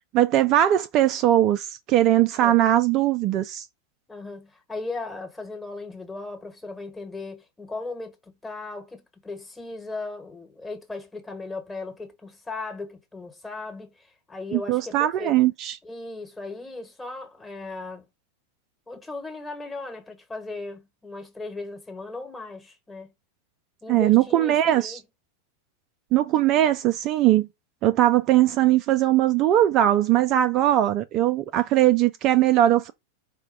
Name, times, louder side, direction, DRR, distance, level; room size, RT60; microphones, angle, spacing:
voice 1, 0.1-3.7 14.5-15.8 23.9-25.0 26.1-27.5 27.8-32.9, right 13 dB, 35° right, 0.3 m, -20 dB
voice 2, 4.1-15.4 15.8-18.1 18.9-23.1 23.8-25.0, left 3 dB, 10° left, 1.2 m, -37 dB
4.8 x 2.1 x 4.6 m
figure-of-eight pair, 90°, 0 cm